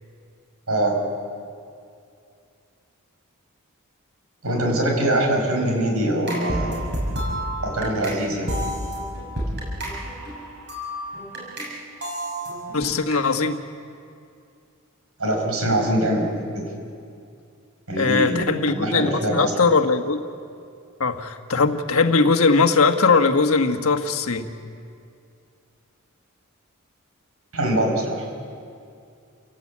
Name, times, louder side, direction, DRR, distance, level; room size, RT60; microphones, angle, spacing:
voice 1, 0.7-1.0 4.4-6.9 7.6-8.5 15.2-16.3 16.5-16.7 17.9-19.5 27.5-28.3, right 1 dB, 80° right, 1 dB, 6.0 m, -23 dB
sound 1, 6.3-11.7 12.0-13.1, equal, 55° right, 7.2 m, -30 dB
voice 2, 12.7-13.6 18.0-20.2 21.0-24.5, left 4 dB, 75° left, 7 dB, 1.5 m, -20 dB
29.0 x 17.0 x 8.6 m, 2.4 s
head